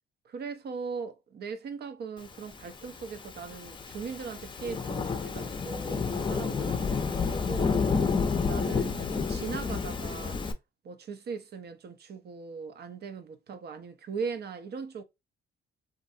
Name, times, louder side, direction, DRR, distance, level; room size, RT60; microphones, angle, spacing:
voice 1, 0.2-7.9 8.4-10.4 10.8-15.0, right 5 dB, 55° right, 0.6 m, -39 dB
Thunderstorm / Rain, 2.8-10.5, left 5 dB, 25° left, 0.5 m, -30 dB
3.0 x 2.5 x 2.6 m
cardioid pair, 90°, 20 cm